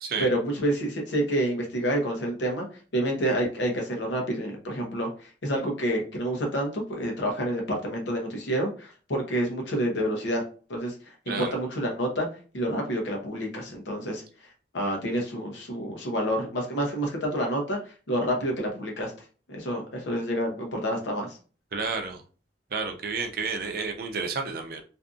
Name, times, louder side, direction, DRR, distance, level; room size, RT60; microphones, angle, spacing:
voice 1, 0.2-2.7 2.9-10.4 10.7-10.9 11.3-12.3 12.5-14.2 14.7-17.8 18.1-19.1 19.5-21.4, right 1 dB, 90° left, 1 dB, 0.7 m, -28 dB
voice 2, 21.7-22.2 22.7-24.8, right 4 dB, 55° right, 4 dB, 0.5 m, -31 dB
2.6 x 2.5 x 2.4 m, 0.38 s
head